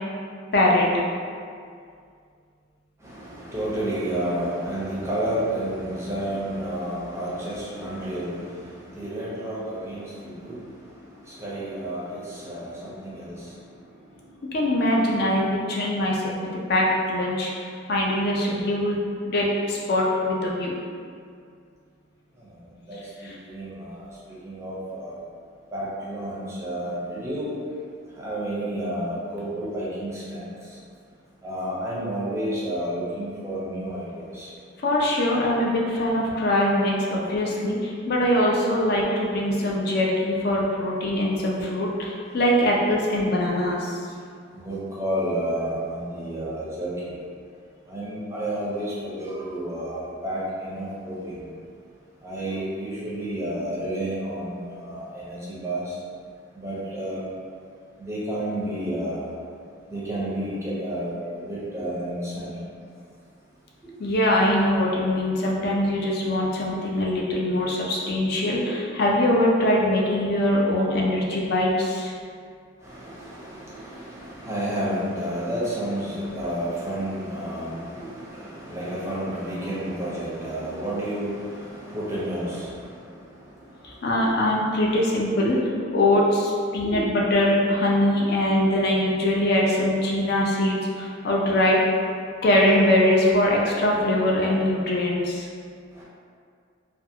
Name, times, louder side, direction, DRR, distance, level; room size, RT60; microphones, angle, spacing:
voice 1, 0.5-0.9 14.5-16.4 16.7-17.5 17.9-20.7 23.2-23.4 34.8-43.9 64.0-72.1 83.8-85.6 85.9-91.8 92.4-95.5, left 1 dB, 50° left, -3 dB, 0.4 m, -22 dB
voice 2, 3.0-10.6 11.2-13.4 22.9-24.1 24.4-25.2 25.7-27.5 28.2-30.5 31.4-34.5 44.5-46.9 47.9-51.5 52.2-55.8 56.6-57.2 58.0-59.3 59.9-62.6 72.8-82.8 86.8-87.0 96.0-96.1, right 1 dB, 15° right, -8 dB, 0.5 m, -30 dB
2.4 x 2.4 x 2.7 m, 2.2 s
head